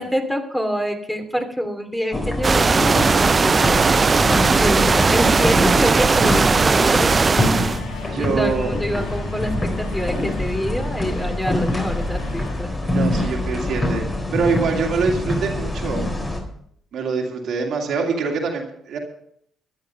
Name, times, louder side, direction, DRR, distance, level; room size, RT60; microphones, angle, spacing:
voice 1, 0.0-4.2 4.5-7.1 8.2-12.7, equal, 5° left, 4 dB, 2.9 m, -26 dB
sound 1, 2.1-16.4, left 1 dB, 25° left, 4.2 m, -25 dB
sound 2, 2.4-7.8, right 4 dB, 35° right, 0.5 m, -17 dB
sound 3, 5.6-13.5, left 6 dB, 70° left, 2.2 m, -38 dB
voice 2, 8.1-8.7 12.8-14.0 14.3-16.1 16.9-19.0, right 5 dB, 60° right, 1 dB, 2.5 m, -24 dB
12.5 x 10.5 x 5.4 m, 0.70 s
hypercardioid pair, 45°, 0 cm